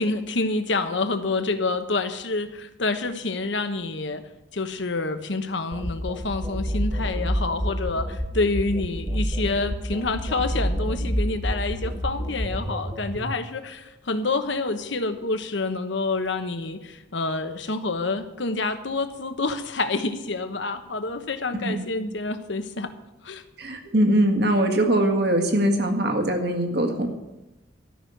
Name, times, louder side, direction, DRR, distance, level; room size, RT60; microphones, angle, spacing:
voice 1, 0.0-4.2 4.5-22.9 23.2-23.4, left 3 dB, 75° left, 9 dB, 1.1 m, -28 dB
sound 1, 5.7-13.3, equal, 20° right, 0.9 m, -28 dB
voice 2, 23.6-27.1, right 1 dB, 60° right, 4 dB, 1.8 m, -22 dB
13.0 x 6.3 x 9.3 m, 1.0 s
head